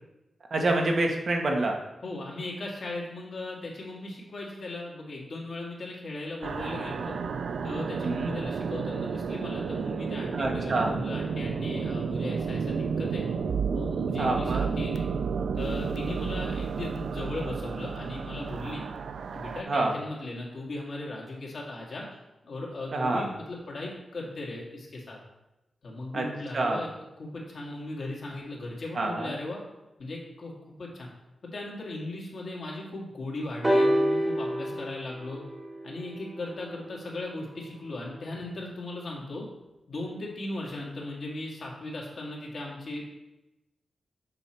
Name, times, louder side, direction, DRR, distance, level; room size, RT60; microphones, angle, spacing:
voice 1, 0.5-1.7 8.0-8.3 10.3-10.9 14.2-14.7 19.7-19.9 22.9-23.2 26.1-26.3 26.5-26.8 28.9-29.3, right 2 dB, 55° right, 1 dB, 1.2 m, -27 dB
voice 2, 2.0-7.2 7.6-13.3 13.7-15.1 15.5-18.8 19.3-25.2 25.8-26.9 27.2-29.6 30.0-30.5 30.8-31.1 31.4-35.4 35.8-39.5 39.9-43.0, left 2 dB, 60° left, -2 dB, 1.9 m, -37 dB
sound 1, 6.4-19.6, right 5 dB, 80° right, 0.4 m, -31 dB
sound 2, 33.6-37.5 38.4-38.5, equal, 15° right, 1.2 m, -28 dB
7.0 x 4.9 x 4.4 m, 0.96 s
wide cardioid pair, 100°, 0 cm